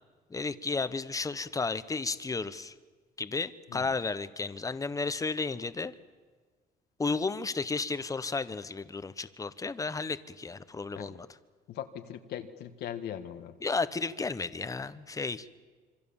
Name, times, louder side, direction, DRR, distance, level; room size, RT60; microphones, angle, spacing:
voice 1, 0.3-2.7 3.2-5.9 7.0-11.3 13.6-15.5, left 4 dB, 20° left, 14 dB, 1.1 m, -33 dB
voice 2, 11.7-13.6, left 10 dB, 75° left, 6 dB, 1.6 m, -40 dB
26.0 x 24.5 x 7.3 m, 1.4 s
cardioid pair, 110°, 17 cm